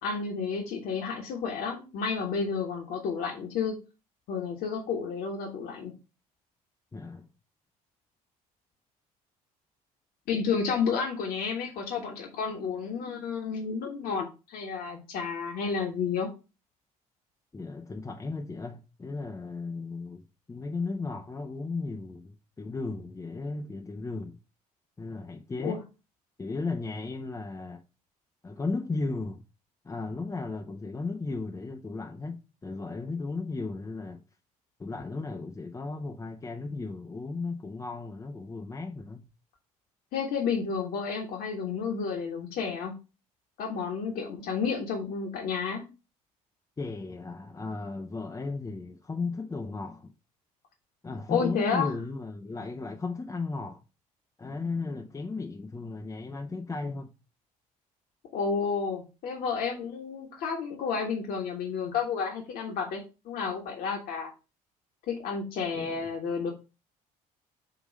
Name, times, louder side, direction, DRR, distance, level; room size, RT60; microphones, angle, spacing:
voice 1, 0.0-3.8 4.3-5.9 10.3-16.3 25.6-25.8 40.1-42.9 43.6-45.8 51.3-51.9 58.3-64.3 65.1-66.5, left 5 dB, 55° left, 1.4 m, -31 dB
voice 2, 6.9-7.3 17.5-20.2 20.5-24.4 25.0-25.8 26.4-27.8 28.4-29.4 29.8-34.2 34.8-39.2 46.8-50.1 51.0-53.8 54.4-57.1 65.7-66.1, left 3 dB, 15° left, 0.7 m, -35 dB
7.7 x 3.0 x 5.1 m
figure-of-eight pair, 50°, 19 cm